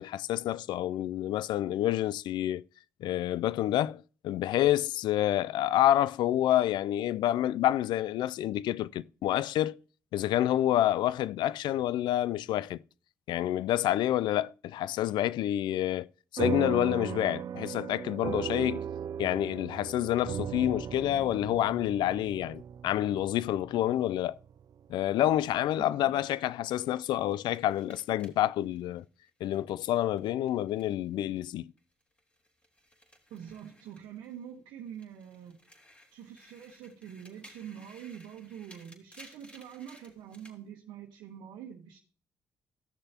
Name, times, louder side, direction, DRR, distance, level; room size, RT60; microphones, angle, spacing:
voice 1, 0.0-2.6 3.0-9.8 10.1-12.8 13.3-16.1 16.3-18.8 19.2-24.4 24.9-29.0 29.4-31.7, left 13 dB, 80° left, 0.4 m, -28 dB
sound 1, 16.4-25.1, right 8 dB, 55° right, 0.4 m, -37 dB
voice 2, 25.7-26.5 33.3-35.6 36.1-42.0, right 9 dB, 85° right, 1.1 m, -45 dB
sound 2, 26.7-31.2 31.5-34.5 34.9-40.6, equal, 15° left, 3.0 m, -58 dB
15.0 x 6.6 x 2.9 m
supercardioid pair, 55°, 8 cm